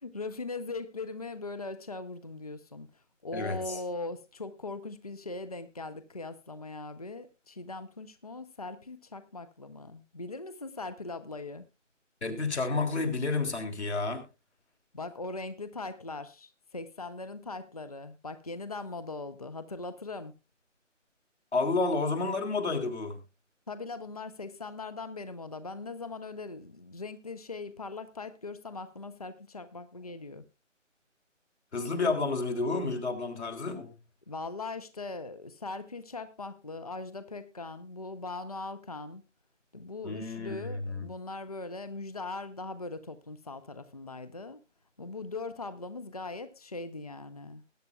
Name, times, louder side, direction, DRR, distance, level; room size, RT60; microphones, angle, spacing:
voice 1, 0.0-11.7 14.9-20.3 23.7-30.4 34.3-39.2 39.7-44.6 45.0-47.6, left 3 dB, 30° left, 13 dB, 0.7 m, -40 dB
voice 2, 3.3-3.8 12.2-14.2 21.5-23.2 31.7-33.9 40.0-41.1, left 3 dB, 60° left, 5 dB, 3.6 m, -30 dB
20.5 x 9.7 x 2.3 m, 0.27 s
figure-of-eight pair, 160°, 38 cm